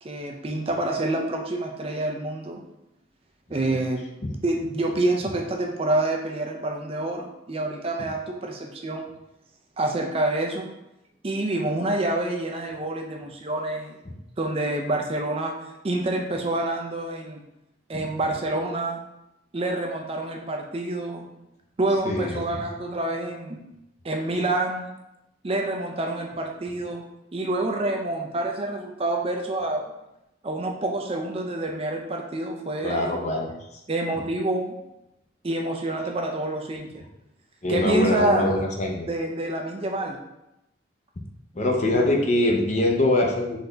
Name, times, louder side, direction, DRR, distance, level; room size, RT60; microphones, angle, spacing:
voice 1, 0.0-2.6 3.5-4.0 4.4-9.1 9.8-10.7 11.2-14.0 14.4-15.5 15.8-17.4 17.9-19.0 19.5-21.3 21.8-23.6 24.0-24.9 25.4-27.0 27.3-29.9 30.4-33.2 33.9-34.8 35.4-37.0 37.7-38.6 39.1-40.2, right 2 dB, 30° right, 1 dB, 0.4 m, -27 dB
voice 2, 22.0-22.4 32.8-33.5 37.6-39.1 41.5-43.6, left 1 dB, 35° left, 0 dB, 0.6 m, -23 dB
4.0 x 3.4 x 3.9 m, 0.90 s
head